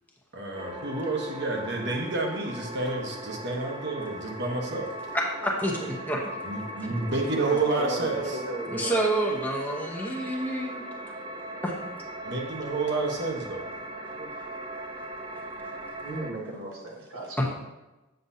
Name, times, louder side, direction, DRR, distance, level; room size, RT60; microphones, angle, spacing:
voice 1, 0.3-4.9 6.4-8.4 12.2-13.7, right 3 dB, 55° right, 1 dB, 1.2 m, -29 dB
sound 1, 0.5-16.3, right 1 dB, 25° right, 0.5 m, -39 dB
voice 2, 5.1-6.2 8.7-10.8 11.6-11.7 17.4-17.5, right 1 dB, 10° left, -1 dB, 0.9 m, -28 dB
voice 3, 7.2-9.1 14.1-14.3 16.0-17.4, right 2 dB, 90° right, -4 dB, 1.7 m, -35 dB
7.9 x 6.8 x 2.8 m, 1.1 s
head